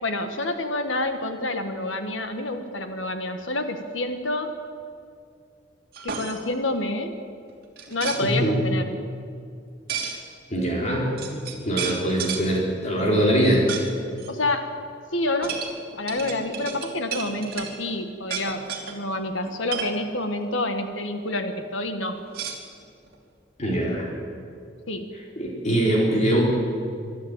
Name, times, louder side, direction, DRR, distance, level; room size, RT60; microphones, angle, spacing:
voice 1, 0.0-4.5 6.0-7.1 7.9-9.0 14.3-14.7 15.1-15.6 16.0-22.2 24.9-25.1, left 2 dB, 90° left, 7 dB, 1.7 m, -28 dB
sound 1, 5.9-6.4 7.8-8.2 9.9-10.2 10.9-11.0 11.2-12.5 13.7-13.9 14.2-14.3 15.4-17.7 18.2-18.9 19.4-20.0 22.3-23.1, right 7 dB, 55° right, 3.0 m, -32 dB
voice 2, 8.2-8.7 10.5-13.7 23.6-24.1 25.4-26.4, right 1 dB, 40° left, -2 dB, 3.8 m, -23 dB
24.0 x 12.5 x 9.0 m, 2.3 s
head